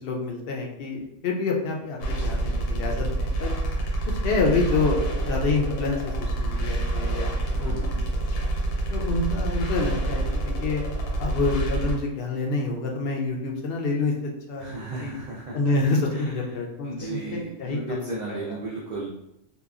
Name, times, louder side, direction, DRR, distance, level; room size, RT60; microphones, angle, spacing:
voice 1, 0.0-3.5 4.1-7.3 7.6-8.2 8.9-10.3 10.6-10.8 11.2-14.7 15.0-15.2 15.5-18.6, left 3 dB, 60° left, 0 dB, 0.6 m, -27 dB
sound 1, 2.0-11.9, right 1 dB, 85° left, 1.0 m, -27 dB
voice 2, 7.6-8.0 14.6-15.7 16.1-16.3 16.8-19.1, right 3 dB, 75° right, -4 dB, 0.4 m, -35 dB
2.8 x 2.3 x 2.3 m, 0.83 s
omnidirectional pair, 1.3 m